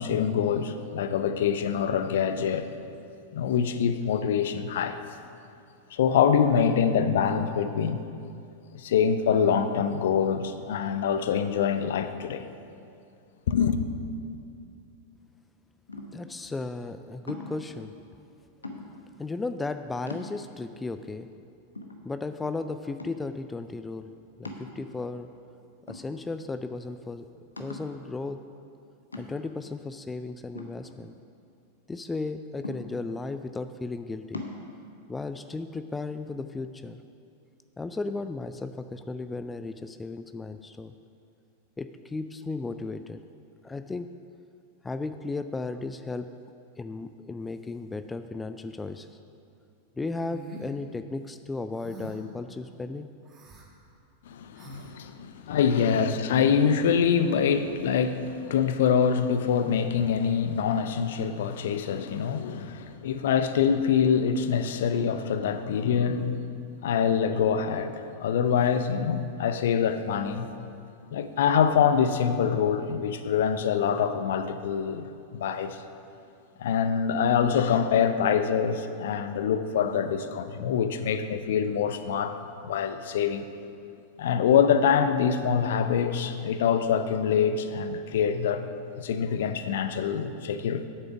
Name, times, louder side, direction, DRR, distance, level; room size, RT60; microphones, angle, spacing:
voice 1, 0.0-2.7 3.3-5.0 5.9-8.0 8.7-12.4 13.5-13.8 54.3-66.5 66.8-70.5 71.1-75.8 76.6-82.4 82.6-83.5 84.2-88.7 89.0-90.9, left 7 dB, 60° left, 0.6 m, -25 dB
sound 1, 15.9-16.4 17.3-17.7 18.6-19.1 19.7-19.8 20.1-20.7 21.2-21.3 21.7-22.5 23.0-23.4 24.4-25.2 25.9-26.5 26.8-26.9 27.6-28.0 29.1-29.6 30.5-31.4 32.6-33.2 34.3-34.6, left 2 dB, 80° left, 1.0 m, -41 dB
voice 2, 16.1-17.9 19.2-21.3 22.0-24.1 24.4-25.3 25.9-28.4 29.2-31.1 31.9-34.4 35.1-37.0 37.8-40.9 41.8-43.2 43.6-44.1 44.8-46.3 46.8-49.1 50.0-53.1, left 3 dB, 10° left, 0.3 m, -35 dB
sound 2, 50.3-50.7 51.7-52.3 53.3-53.7 54.6-54.9, right 1 dB, 25° right, 1.5 m, -43 dB
8.8 x 7.8 x 6.1 m
figure-of-eight pair, 90°, 0 cm